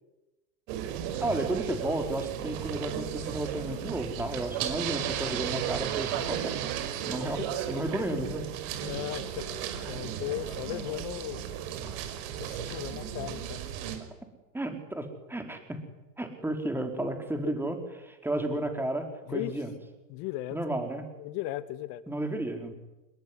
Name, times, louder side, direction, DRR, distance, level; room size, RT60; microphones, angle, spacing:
sound 1, 0.7-14.0, right 10 dB, 45° right, 5.8 m, -35 dB
voice 1, 1.2-6.6 7.0-7.4 7.7-8.4 14.5-15.8 16.2-19.7 20.5-21.0 22.1-22.7, right 1 dB, 5° right, 5 dB, 4.6 m, -32 dB
voice 2, 7.7-8.1 8.8-9.5 9.7-11.4 12.4-13.6 17.4-17.6 19.3-19.6 20.1-20.6 21.2-22.0, left 15 dB, 40° left, 14 dB, 2.1 m, -37 dB
26.5 x 22.5 x 9.8 m, 1.0 s
hypercardioid pair, 120°, 49 cm